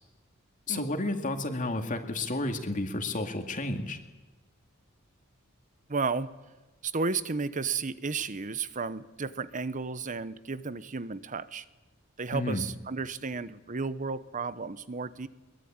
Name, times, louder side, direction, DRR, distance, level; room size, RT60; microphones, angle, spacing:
voice 1, 0.7-4.0 12.3-12.6, left 2 dB, 40° left, 4 dB, 2.3 m, -31 dB
voice 2, 5.9-6.3 6.8-11.6 12.2-15.3, right 4 dB, 40° right, 15 dB, 0.9 m, -33 dB
22.5 x 21.0 x 8.9 m, 1.2 s
head